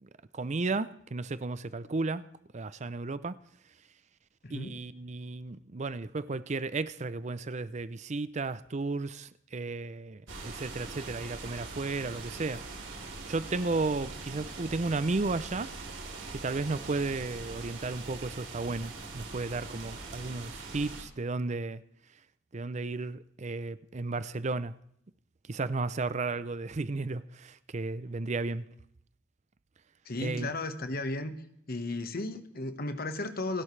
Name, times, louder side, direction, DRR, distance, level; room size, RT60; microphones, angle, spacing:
voice 1, 0.0-2.2 2.5-3.4 4.5-12.6 13.3-15.7 16.3-21.8 22.5-24.7 25.5-28.7 30.2-30.5, right 3 dB, 35° right, 0.5 m, -34 dB
voice 2, 4.4-4.8 30.0-31.3 31.7-33.6, left 2 dB, 50° left, 1.4 m, -34 dB
sound 1, 10.3-21.0, right 3 dB, 65° right, 4.1 m, -42 dB
29.5 x 12.0 x 3.3 m
head